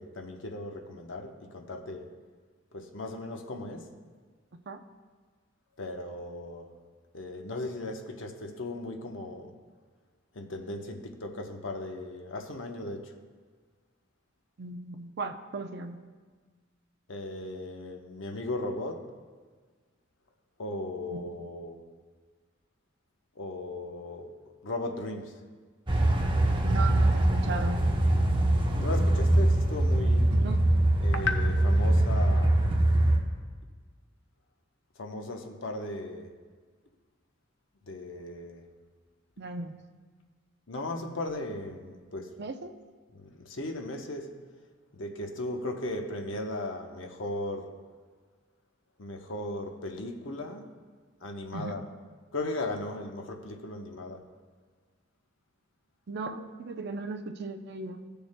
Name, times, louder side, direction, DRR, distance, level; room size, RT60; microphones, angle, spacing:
voice 1, 0.0-2.1 2.7-3.9 5.8-6.7 7.1-9.5 10.3-13.1 17.1-19.1 20.6-21.8 23.4-25.4 28.8-30.3 31.0-32.6 35.0-36.3 37.8-38.7 40.7-42.4 43.1-44.4 44.9-47.8 49.0-50.7 51.2-51.9 52.3-54.2, left 2 dB, 75° left, 0.9 m, -37 dB
voice 2, 14.6-16.0 21.1-21.2 26.6-27.8 30.3-30.6 39.4-39.7 42.4-42.7 51.5-51.7 56.1-58.0, right 3 dB, 55° right, 0.6 m, -37 dB
sound 1, 25.9-33.2, right 1 dB, 25° right, 0.9 m, -23 dB
17.5 x 6.8 x 2.2 m
head